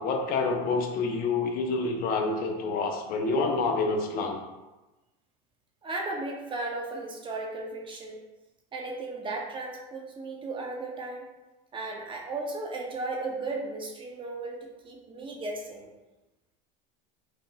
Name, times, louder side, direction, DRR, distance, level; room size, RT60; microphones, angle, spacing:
voice 1, 0.0-4.4, left 3 dB, 45° left, 3 dB, 0.6 m, -27 dB
voice 2, 5.8-8.2 8.7-11.3 11.7-15.9, right 2 dB, 25° right, 0 dB, 0.6 m, -35 dB
4.8 x 2.9 x 2.3 m, 1.1 s
supercardioid pair, 115°, 20 cm